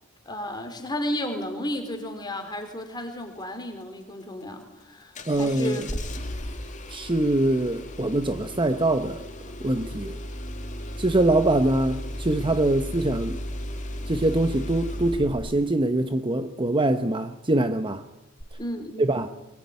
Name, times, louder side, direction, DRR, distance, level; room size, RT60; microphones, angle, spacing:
voice 1, 0.3-5.8 18.6-19.2, left 1 dB, 20° left, 4.0 m, -33 dB
Engine starting, 5.1-15.8 18.4-18.5, equal, 35° left, 2.3 m, -35 dB
voice 2, 5.3-5.8 6.9-9.3 9.6-10.2 11.0-13.4 14.1-18.0 19.0-19.3, right 2 dB, 25° right, 1.0 m, -23 dB
23.5 x 21.5 x 9.6 m
head